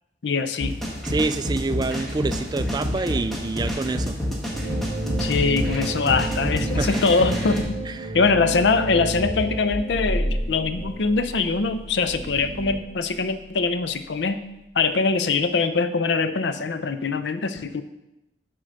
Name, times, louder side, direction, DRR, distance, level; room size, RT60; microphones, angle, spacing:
voice 1, 0.2-0.8 5.2-7.7 8.1-14.4 14.8-17.8, left 4 dB, 70° left, 10 dB, 0.5 m, -23 dB
sound 1, 0.6-7.6, equal, ahead, 1.4 m, -28 dB
voice 2, 1.0-4.2 6.8-6.9, right 3 dB, 25° right, 11 dB, 0.3 m, -26 dB
sound 2, 4.5-12.8, right 2 dB, 55° right, 1.0 m, -32 dB
sound 3, 9.2-13.7, equal, 25° left, 3.2 m, -32 dB
7.5 x 4.0 x 6.3 m, 0.93 s
head